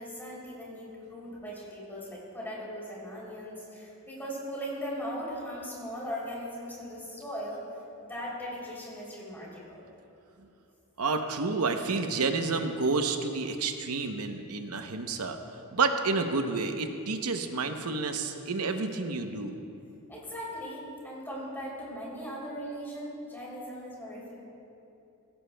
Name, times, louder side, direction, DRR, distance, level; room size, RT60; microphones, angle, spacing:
voice 1, 0.0-7.6 8.0-9.8 20.1-24.3, equal, 10° left, -6 dB, 3.1 m, -39 dB
voice 2, 11.0-15.4 15.7-19.6, right 4 dB, 85° right, 6 dB, 0.8 m, -30 dB
16.0 x 15.5 x 2.2 m, 2.7 s
head